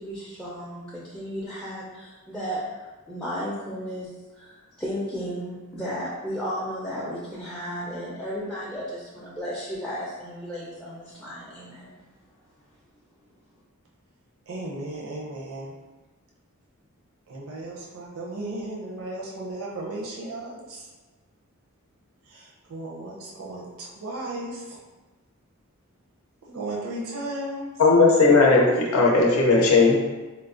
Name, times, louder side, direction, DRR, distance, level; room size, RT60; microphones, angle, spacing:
voice 1, 0.0-12.0, equal, 5° left, -7 dB, 0.4 m, -34 dB
voice 2, 14.5-15.7 17.3-20.8 22.3-24.8 26.5-27.7, right 1 dB, 70° right, -3 dB, 0.5 m, -35 dB
voice 3, 27.8-30.0, left 3 dB, 70° left, -2 dB, 0.6 m, -17 dB
4.3 x 2.0 x 2.4 m, 1.2 s
head